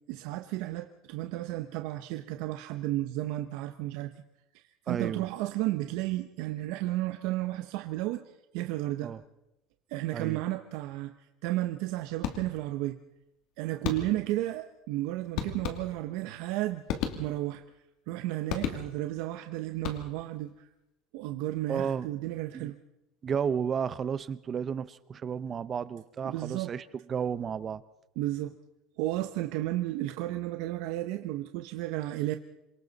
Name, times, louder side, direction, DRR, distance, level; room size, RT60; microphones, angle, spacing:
voice 1, 0.1-4.1 4.5-9.1 9.9-13.0 13.6-16.9 17.2-17.6 18.1-20.5 21.1-22.8 26.2-26.7 28.2-28.5 29.0-32.4, right 16 dB, 65° right, 7 dB, 0.9 m, -33 dB
voice 2, 4.9-5.2 9.0-9.2 10.1-10.4 21.7-22.1 22.5-22.7 23.2-27.8, right 7 dB, 25° right, 16 dB, 0.7 m, -32 dB
sound 1, 12.2-12.8 13.8-14.4 15.4-16.2 16.9-17.6 18.5-19.2 19.7-20.4, left 9 dB, 60° left, 2.6 m, -35 dB
27.0 x 23.0 x 4.1 m, 0.90 s
cardioid pair, 155°, 0 cm